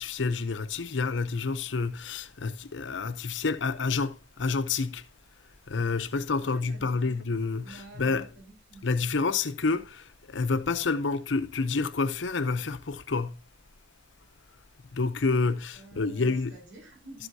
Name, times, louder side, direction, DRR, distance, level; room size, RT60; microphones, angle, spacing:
voice 1, 0.0-5.0 5.7-8.3 8.8-13.4 14.9-16.6, left 4 dB, 90° left, 0.7 m, -29 dB
voice 2, 6.1-7.3 7.6-8.9 15.7-17.3, right 2 dB, 80° right, 3.9 m, -49 dB
13.0 x 7.9 x 2.7 m
head